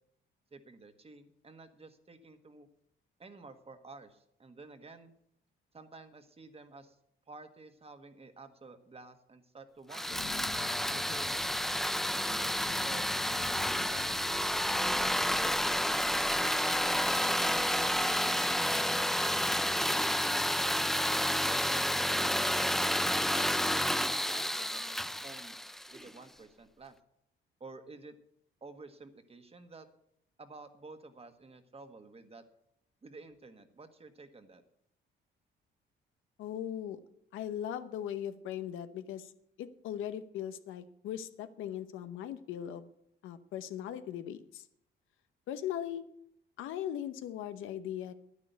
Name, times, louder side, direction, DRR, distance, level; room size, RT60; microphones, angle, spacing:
voice 1, 0.5-2.7 3.2-5.1 5.7-7.0 7.3-10.2 10.9-12.5 12.8-13.1 13.6-16.3 16.6-17.1 17.8-18.6 19.6-20.7 21.2-22.8 23.3-25.6 25.9-26.9 27.6-28.1 28.6-29.9 30.4-32.4 33.0-34.6, right 3 dB, 30° right, 8 dB, 1.5 m, -51 dB
sound 1, 9.9-26.1, equal, ahead, 0.4 m, -30 dB
sound 2, 10.1-23.7, left 7 dB, 45° left, 0.7 m, -51 dB
voice 2, 36.4-37.0 37.3-39.3 39.6-42.8 43.2-44.6 45.5-46.0 46.6-48.1, left 10 dB, 90° left, 11 dB, 0.9 m, -39 dB
9.9 x 9.8 x 8.2 m, 0.75 s
cardioid pair, 90°, 20 cm